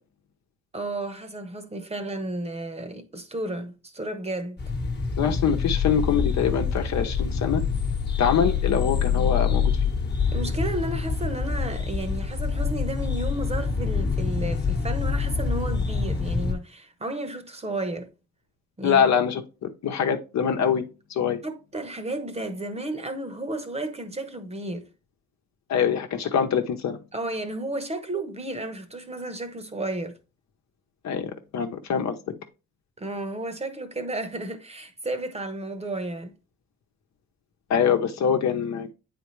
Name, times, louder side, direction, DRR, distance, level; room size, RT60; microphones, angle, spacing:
voice 1, 0.7-4.6 10.3-18.1 18.8-19.1 21.4-24.9 27.1-30.2 33.0-36.3, right 1 dB, 20° right, 1.0 m, -32 dB
sound 1, 4.6-16.5, left 5 dB, 35° left, 1.2 m, -26 dB
voice 2, 5.2-7.6 8.2-9.6 18.8-21.4 25.7-27.0 31.0-32.2 37.7-38.9, left 7 dB, 65° left, 1.0 m, -24 dB
8.5 x 4.3 x 3.2 m
cardioid pair, 90°, 30 cm